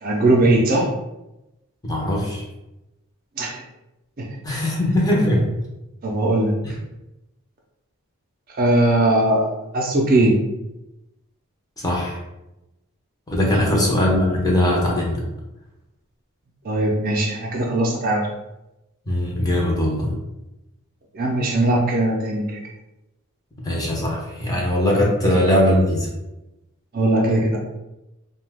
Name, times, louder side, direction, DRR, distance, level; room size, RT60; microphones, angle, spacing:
voice 1, 0.0-0.9 3.4-3.6 4.2-4.3 6.0-6.6 8.6-10.4 13.6-13.9 16.6-18.3 21.1-22.6 26.9-27.6, right 1 dB, 40° right, 0 dB, 0.4 m, -19 dB
voice 2, 1.8-2.4 4.4-5.5 11.8-12.2 13.3-15.2 19.1-20.1 23.6-26.1, left 1 dB, 15° left, -2 dB, 0.5 m, -20 dB
2.7 x 2.2 x 3.3 m, 0.95 s
head